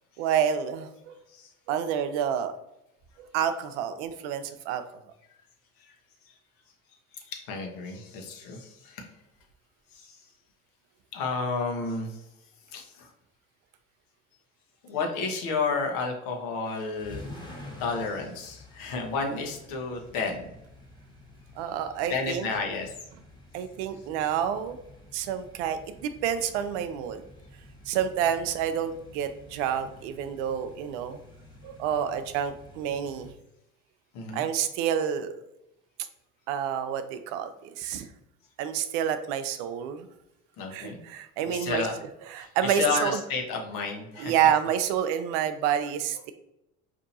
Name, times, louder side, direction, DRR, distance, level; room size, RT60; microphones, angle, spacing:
voice 1, 0.2-1.2 1.7-2.5 3.2-4.8 21.6-22.5 23.5-24.8 25.1-27.2 27.9-31.2 31.6-33.3 34.3-35.4 36.5-38.1 38.6-40.1 40.7-41.9 42.3-43.2 44.2-46.3, right 9 dB, 75° right, 10 dB, 0.5 m, -28 dB
voice 2, 7.1-9.0 9.9-10.2 11.1-12.3 12.7-13.1 14.8-17.3 17.8-20.5 21.6-21.8 22.1-22.9 34.1-34.5 40.6-41.0 41.4-42.0 42.4-44.6, left 4 dB, 70° left, 2 dB, 1.0 m, -32 dB
sound 1, 16.6-33.3, left 2 dB, 10° left, 1.3 m, -49 dB
4.3 x 2.6 x 2.6 m, 0.85 s
hypercardioid pair, 65°, 36 cm